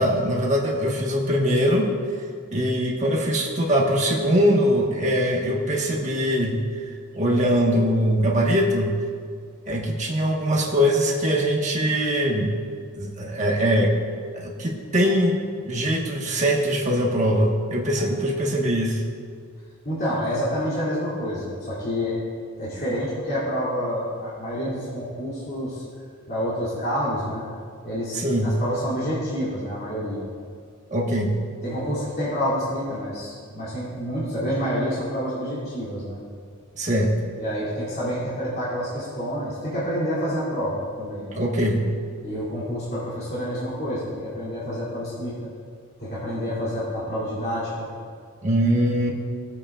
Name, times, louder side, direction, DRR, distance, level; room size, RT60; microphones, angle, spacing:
voice 1, 0.0-1.9 2.5-6.6 7.1-9.0 9.7-12.5 12.9-13.9 14.3-15.4 15.6-19.0 28.1-28.5 30.9-31.4 36.8-37.3 41.3-41.9 48.4-49.1, equal, 35° right, -2 dB, 1.4 m, -22 dB
voice 2, 19.8-22.2 22.6-25.8 26.3-27.5 27.8-30.3 31.6-36.2 37.4-41.4 42.2-45.5 46.0-47.9, equal, 45° left, -11 dB, 2.9 m, -28 dB
18.0 x 8.4 x 2.5 m, 2.1 s
head